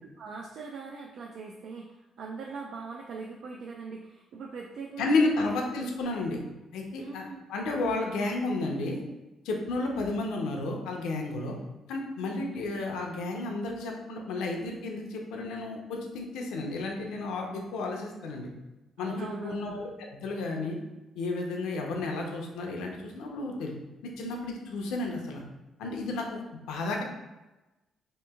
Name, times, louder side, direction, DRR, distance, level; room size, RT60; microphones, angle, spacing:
voice 1, 0.1-5.1 5.4-5.6 7.0-7.4 19.0-19.8, right 4 dB, 70° right, 0 dB, 0.3 m, -41 dB
voice 2, 5.0-6.4 6.7-9.0 9.4-11.6 11.9-18.5 19.0-19.9 20.2-20.8 21.2-23.7 24.2-25.4 25.8-26.4 26.7-27.0, left 2 dB, 90° left, 1 dB, 0.5 m, -32 dB
2.8 x 2.6 x 3.4 m, 1.1 s
cardioid pair, 90°, 0 cm